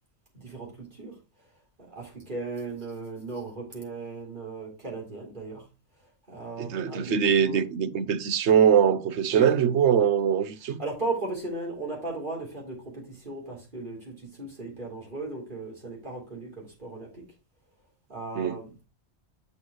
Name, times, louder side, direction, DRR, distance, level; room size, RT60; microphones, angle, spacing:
voice 1, 0.3-1.2 1.8-5.7 6.3-7.7 9.3-9.5 10.8-17.3 18.1-18.8, right 2 dB, 45° right, 3.9 m, -36 dB
voice 2, 6.6-10.8 18.4-18.6, right 8 dB, 80° right, 1.0 m, -22 dB
8.6 x 6.2 x 3.0 m
omnidirectional pair, 1.1 m